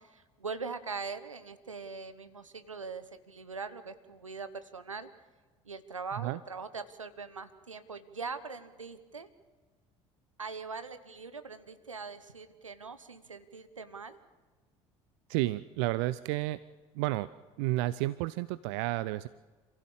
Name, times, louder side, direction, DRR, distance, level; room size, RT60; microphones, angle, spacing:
voice 1, 0.0-5.1 5.6-9.3 10.4-14.2, right 4 dB, 90° right, 12 dB, 1.1 m, -42 dB
voice 2, 15.3-16.6 16.9-17.3 17.6-19.3, right 18 dB, 65° right, 17 dB, 0.6 m, -31 dB
27.0 x 15.5 x 7.3 m, 1.3 s
figure-of-eight pair, 60°, 16 cm